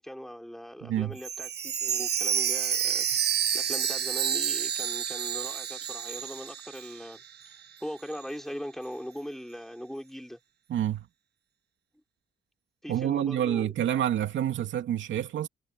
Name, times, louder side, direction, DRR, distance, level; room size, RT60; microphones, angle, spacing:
voice 1, 0.0-3.2 3.5-7.2 7.8-10.4 12.8-14.0, equal, ahead, 4.8 m, -40 dB
voice 2, 0.8-1.2 10.7-11.1 12.9-15.5, right 10 dB, 70° right, 2.7 m, -28 dB
Chime, 1.2-7.1 7.4-7.5 8.1-8.2, right 8 dB, 55° right, 1.4 m, -29 dB
cardioid pair, 90°, 20 cm